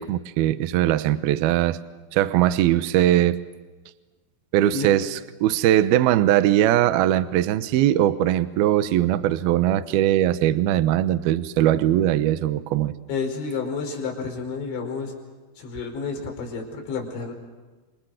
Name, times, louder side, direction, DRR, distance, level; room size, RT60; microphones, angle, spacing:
voice 1, 0.0-1.8 2.1-3.4 4.5-12.9, right 12 dB, 80° right, 12 dB, 2.3 m, -20 dB
voice 2, 13.1-15.1 15.6-17.3, left 5 dB, 65° left, 2 dB, 7.3 m, -30 dB
30.0 x 27.0 x 6.6 m, 1.3 s
omnidirectional pair, 5.8 m